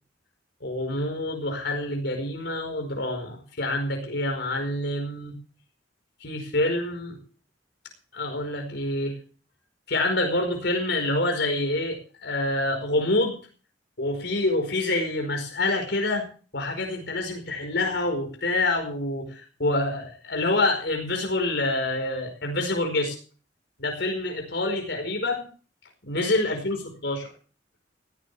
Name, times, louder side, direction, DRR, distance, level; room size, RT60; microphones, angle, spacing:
voice 1, 0.6-5.3 6.2-7.2 8.1-9.2 9.9-13.4 14.0-16.3 16.5-23.2 23.8-25.4 26.0-27.3, left 2 dB, 65° left, 3 dB, 4.9 m, -27 dB
18.5 x 16.0 x 3.5 m, 0.39 s
head